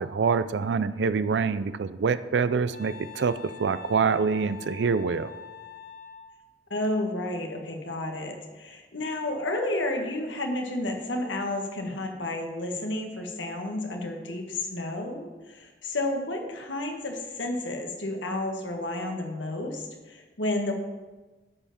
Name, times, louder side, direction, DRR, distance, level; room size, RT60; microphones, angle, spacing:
voice 1, 0.0-3.3 3.6-5.3, right 5 dB, 70° right, 14 dB, 0.4 m, -25 dB
Wind instrument woodwind instrument, 2.7-6.4, left 5 dB, 50° left, 0.6 m, -44 dB
voice 2, 6.7-20.7, left 1 dB, 90° left, 3 dB, 1.6 m, -31 dB
10.5 x 5.7 x 7.1 m, 1.2 s
head